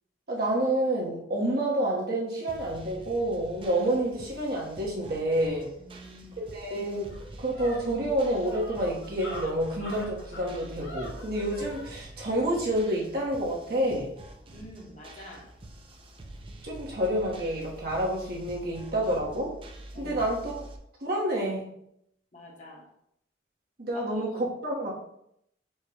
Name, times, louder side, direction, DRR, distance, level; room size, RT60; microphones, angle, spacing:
voice 1, 0.3-5.7 6.4-14.1 16.6-19.5 20.0-20.5 21.0-21.7 23.8-24.9, right 1 dB, 60° right, -3 dB, 1.1 m, -28 dB
sound 1, 2.5-20.8, right 1 dB, 30° right, 0.5 m, -46 dB
voice 2, 5.8-6.3 14.5-15.5 19.9-20.2 22.3-22.9 23.9-24.5, left 1 dB, 40° left, -2 dB, 1.1 m, -46 dB
sound 2, 6.4-6.5 6.9-11.9, left 1 dB, 75° left, 1.1 m, -43 dB
4.5 x 2.2 x 4.7 m, 0.75 s
head